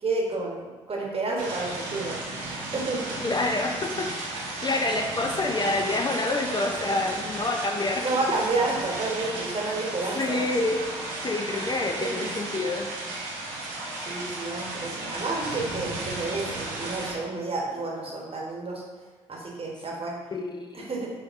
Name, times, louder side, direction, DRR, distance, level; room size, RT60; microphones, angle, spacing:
voice 1, 0.0-2.2 2.6-3.2 8.0-10.4 12.0-12.2 14.0-18.8 19.3-20.2 20.7-21.1, right 3 dB, 40° right, -2 dB, 1.1 m, -30 dB
sound 1, 1.4-17.1, right 2 dB, 85° right, 0.6 m, -34 dB
voice 2, 3.2-4.1 4.6-8.0 10.1-10.8 11.2-12.9 20.3-20.9, left 2 dB, 30° left, 2 dB, 0.5 m, -27 dB
5.0 x 2.8 x 2.5 m, 1.4 s
hypercardioid pair, 40°, 15 cm